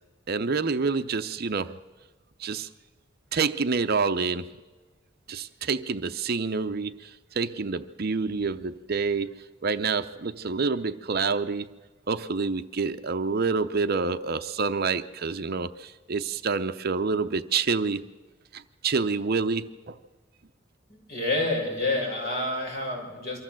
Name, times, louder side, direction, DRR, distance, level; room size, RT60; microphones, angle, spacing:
voice 1, 0.3-1.7 2.4-2.7 3.3-4.5 5.3-11.7 12.1-18.1 18.5-20.0, right 4 dB, 50° right, 11 dB, 0.6 m, -28 dB
voice 2, 20.9-23.4, left 2 dB, 50° left, -1 dB, 6.6 m, -28 dB
24.0 x 14.5 x 7.6 m, 1.3 s
head